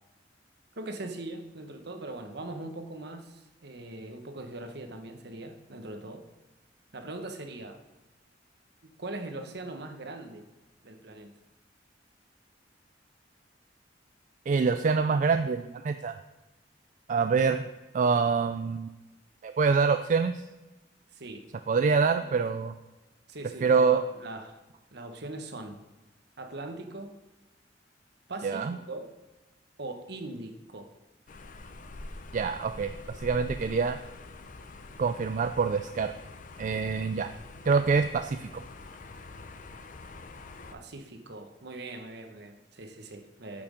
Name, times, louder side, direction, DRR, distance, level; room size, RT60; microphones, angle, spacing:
voice 1, 0.8-6.2 6.9-7.8 9.0-10.4 10.8-11.3 21.1-21.4 22.1-22.3 23.3-24.6 24.9-25.8 26.4-27.2 28.3-29.1 29.8-30.9 40.7-43.6, right 2 dB, 60° right, 6 dB, 1.1 m, -41 dB
voice 2, 14.5-16.2 17.1-17.7 17.9-18.9 19.4-20.4 21.7-22.7 23.6-24.0 28.4-28.8 32.3-32.9 33.2-34.0 35.0-36.1 36.6-37.3 37.6-38.6, right 5 dB, 45° right, 9 dB, 0.3 m, -25 dB
sound 1, 31.3-40.7, left 2 dB, 45° left, 0.6 m, -45 dB
8.6 x 6.1 x 5.0 m, 1.1 s
head